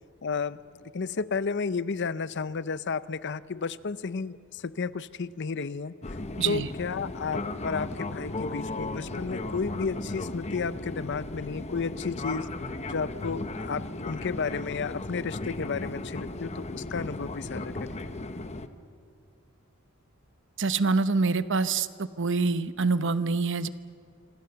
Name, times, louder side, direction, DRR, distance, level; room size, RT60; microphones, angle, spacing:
voice 1, 0.2-5.9 6.4-12.5 12.9-18.0, left 5 dB, 60° left, 16 dB, 0.6 m, -32 dB
Fixed-wing aircraft airplane, 6.0-18.7, left 2 dB, 35° left, 1.0 m, -36 dB
voice 2, 6.4-6.7 20.6-23.7, right 4 dB, 65° right, 13 dB, 0.9 m, -26 dB
26.5 x 26.0 x 6.9 m, 2.2 s
head